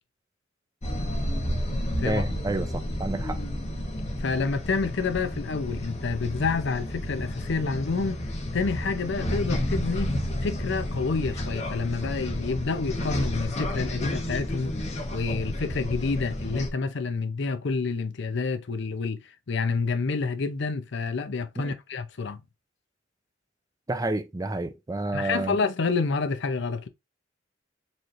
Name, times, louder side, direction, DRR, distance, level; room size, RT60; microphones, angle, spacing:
sound 1, 0.8-16.7, left 1 dB, 35° left, 0.9 m, -31 dB
voice 1, 2.0-3.4 21.6-21.7 23.9-25.6, right 2 dB, 20° right, 0.4 m, -30 dB
voice 2, 4.2-8.2 8.5-10.2 10.4-14.7 15.1-19.2 19.5-22.4 25.1-26.9, left 4 dB, 65° left, 0.6 m, -28 dB
4.1 x 3.1 x 2.5 m
head